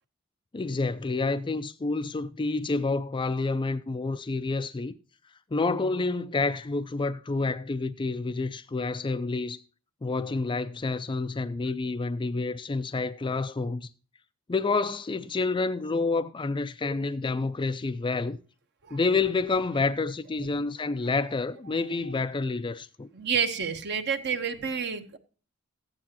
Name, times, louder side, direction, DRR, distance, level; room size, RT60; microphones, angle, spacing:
voice 1, 0.5-4.9 5.5-9.6 10.0-13.9 14.5-18.4 18.9-23.1, left 3 dB, 25° left, 0.4 m, -28 dB
voice 2, 23.1-25.2, right 6 dB, 55° right, 1.1 m, -29 dB
14.5 x 9.4 x 2.9 m
head